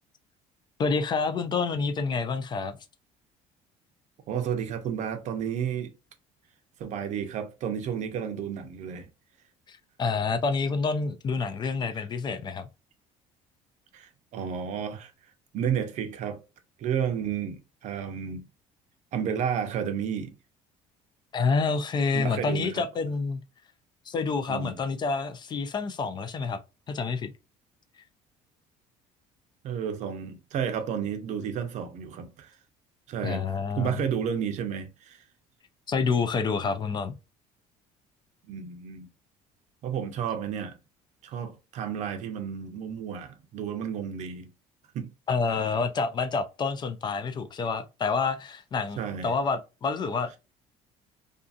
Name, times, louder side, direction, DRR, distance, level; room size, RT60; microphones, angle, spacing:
voice 1, 0.8-2.8 9.7-12.7 21.3-23.4 24.1-26.6 26.9-27.3 33.2-34.0 35.9-37.1 45.3-50.4, left 4 dB, 30° left, 0.4 m, -28 dB
voice 2, 4.3-5.9 6.8-9.1 13.9-15.1 15.5-16.4 16.8-18.4 19.1-20.3 22.1-22.8 24.5-24.8 29.6-32.5 33.1-33.4 33.8-35.2 38.5-39.1 39.8-40.8 41.2-44.5 44.9-45.1 49.0-49.3, right 8 dB, 55° right, 0.6 m, -32 dB
2.6 x 2.4 x 2.4 m
cardioid pair, 125°, 14 cm